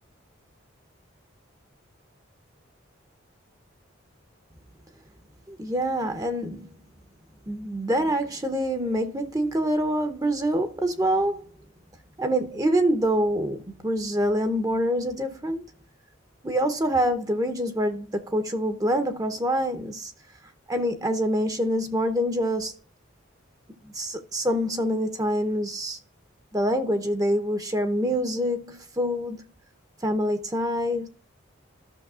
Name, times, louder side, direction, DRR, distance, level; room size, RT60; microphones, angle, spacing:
voice 1, 5.5-6.7 7.5-11.4 12.2-15.7 16.4-20.1 20.7-22.8 23.8-26.0 26.5-29.4 30.0-31.1, equal, 20° right, 0.8 m, -26 dB
13.5 x 6.4 x 2.4 m
head